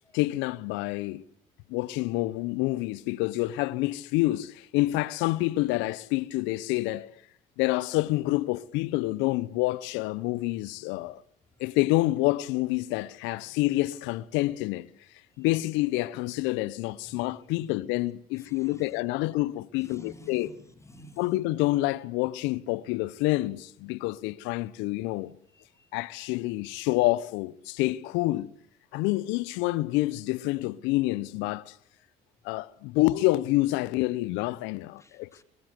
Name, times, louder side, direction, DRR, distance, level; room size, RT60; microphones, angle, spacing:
voice 1, 0.1-1.2 1.7-7.1 7.6-11.2 11.6-14.9 15.4-20.5 21.2-25.3 25.9-28.5 28.9-31.7 32.4-35.3, left 19 dB, 70° left, 1.1 m, -28 dB
voice 2, 17.0-17.8 18.4-19.3 19.8-21.4 25.5-25.9 35.0-35.4, left 1 dB, 15° left, 4.8 m, -52 dB
24.0 x 22.5 x 8.2 m
hypercardioid pair, 65°, 20 cm